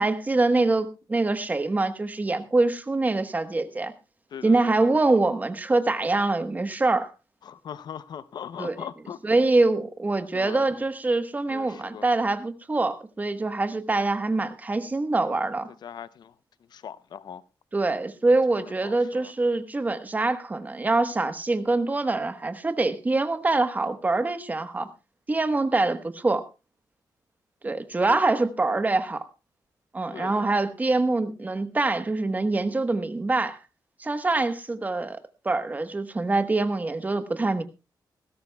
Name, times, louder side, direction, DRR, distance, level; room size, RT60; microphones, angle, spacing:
voice 1, 0.0-3.9 4.4-7.1 8.6-8.9 9.2-15.7 17.7-24.9 25.3-26.4 27.6-29.2 29.9-33.6 34.0-35.2 35.4-37.6, right 2 dB, 20° right, 1.1 m, -24 dB
voice 2, 4.3-4.9 7.5-9.2 10.3-10.7 11.5-12.0 15.8-16.3 16.7-17.4 18.8-19.3 30.1-30.5, left 8 dB, 70° left, 0.7 m, -40 dB
19.5 x 16.5 x 2.3 m
wide cardioid pair, 145°, 8 cm